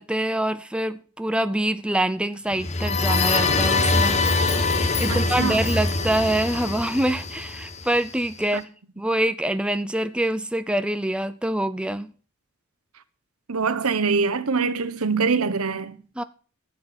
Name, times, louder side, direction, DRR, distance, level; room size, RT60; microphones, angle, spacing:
voice 1, 0.0-8.7 9.0-12.1 16.2-16.3, right 1 dB, 5° right, 0.5 m, -25 dB
sound 1, 2.5-8.3, left 3 dB, 30° left, 1.2 m, -23 dB
voice 2, 5.1-5.6 8.5-8.6 13.5-16.0, right 5 dB, 75° right, 1.0 m, -24 dB
14.5 x 7.5 x 6.0 m
head